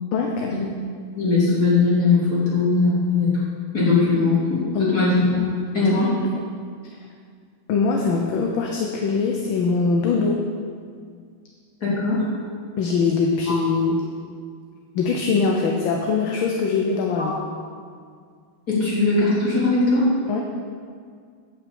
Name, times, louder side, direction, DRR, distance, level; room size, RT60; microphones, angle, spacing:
voice 1, 0.1-0.5 4.7-5.0 5.8-6.1 7.7-10.4 12.8-14.0 15.0-17.3 20.3-20.4, left 4 dB, 70° left, 1 dB, 1.6 m, -22 dB
voice 2, 1.2-3.3 3.7-5.2 5.7-6.1 11.8-12.3 13.5-13.6 17.2-17.3 18.7-20.1, left 3 dB, 45° left, -7 dB, 3.8 m, -20 dB
8.6 x 8.3 x 7.0 m, 2.1 s
omnidirectional pair, 2.3 m